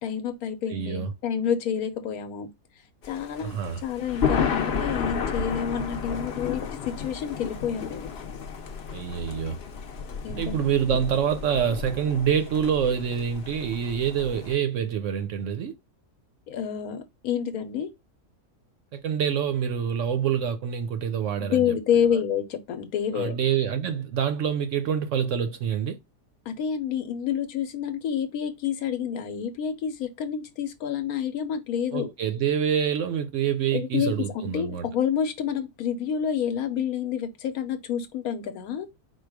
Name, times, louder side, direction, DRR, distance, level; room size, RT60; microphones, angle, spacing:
voice 1, 0.0-2.5 3.1-3.6 3.8-8.1 10.2-10.6 16.5-17.9 21.4-23.4 26.5-32.1 33.7-38.9, left 8 dB, 75° left, 1.1 m, -28 dB
voice 2, 0.7-1.1 3.4-3.8 8.9-9.6 10.3-15.7 18.9-21.7 23.1-26.0 31.9-34.9, right 8 dB, 70° right, 0.8 m, -26 dB
Thunder, 3.0-14.6, left 6 dB, 55° left, 0.8 m, -32 dB
4.5 x 2.3 x 4.6 m
omnidirectional pair, 1.6 m